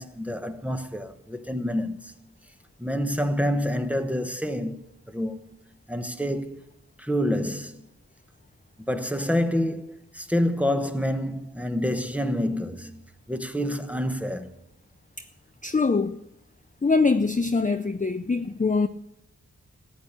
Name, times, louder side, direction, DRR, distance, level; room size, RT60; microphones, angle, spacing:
voice 1, 0.0-2.1 2.8-5.4 5.9-6.7 7.0-7.8 8.9-13.0 13.3-14.5, equal, 5° right, 1.0 m, -27 dB
voice 2, 15.6-16.2 16.8-18.9, left 4 dB, 25° left, 0.5 m, -23 dB
14.5 x 8.7 x 6.6 m
wide cardioid pair, 45°, 33 cm